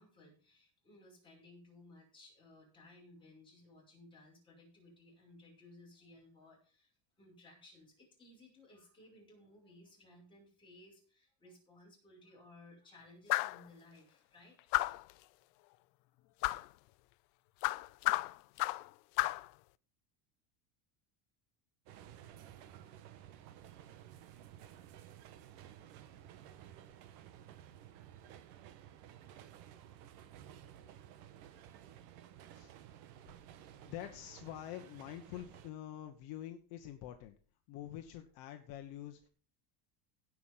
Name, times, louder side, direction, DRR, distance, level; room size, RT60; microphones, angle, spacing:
voice 1, 0.0-6.9 7.2-14.7, left 2 dB, 10° left, -4 dB, 6.0 m, -59 dB
sound 1, 13.3-13.6 14.7-15.1 16.4-16.7 17.6-18.9 19.2-19.5, left 21 dB, 85° left, 0.6 m, -32 dB
sound 2, 21.9-35.7, right 10 dB, 70° right, 1.5 m, -55 dB
voice 2, 33.8-37.3 37.7-39.3, left 12 dB, 55° left, 5 dB, 1.2 m, -46 dB
16.5 x 6.1 x 5.6 m, 0.41 s
cardioid pair, 180°, 46 cm